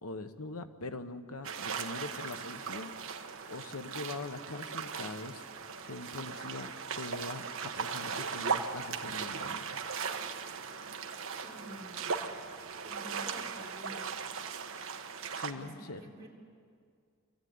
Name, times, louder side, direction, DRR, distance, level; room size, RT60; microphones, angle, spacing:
voice 1, 0.0-2.9 3.5-5.4 5.8-9.8 15.3-16.0, left 2 dB, 90° left, 9 dB, 1.2 m, -42 dB
sound 1, 1.4-15.5, right 6 dB, 65° right, 1.3 m, -38 dB
voice 2, 11.4-12.1 12.8-14.1 15.5-15.7 16.0-16.3, equal, 15° right, -5 dB, 4.7 m, -49 dB
25.0 x 15.0 x 9.6 m, 2.2 s
head